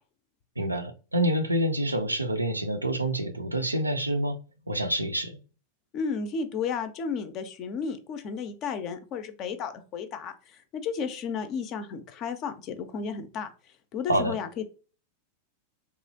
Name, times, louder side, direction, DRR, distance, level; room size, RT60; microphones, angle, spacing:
voice 1, 0.6-4.4 4.7-5.4 14.1-14.4, right 1 dB, 85° right, 0.4 m, -27 dB
voice 2, 5.9-13.5 13.9-14.6, left 6 dB, 35° left, 0.4 m, -33 dB
2.9 x 2.3 x 2.6 m
figure-of-eight pair, 90°, 0 cm